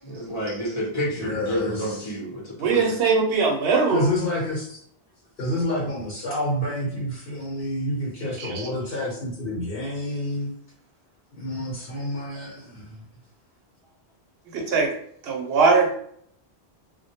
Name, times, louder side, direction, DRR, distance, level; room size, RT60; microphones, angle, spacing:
voice 1, 0.0-3.0, equal, 30° left, -5 dB, 0.7 m, -29 dB
voice 2, 1.2-2.0 3.9-4.8 5.4-10.5 11.3-13.0, left 1 dB, 65° left, -3 dB, 1.0 m, -29 dB
voice 3, 2.6-4.1 8.4-8.7 14.5-14.9 15.2-16.0, right 4 dB, 70° right, 2 dB, 0.8 m, -21 dB
2.2 x 2.1 x 2.8 m, 0.65 s
omnidirectional pair, 1.1 m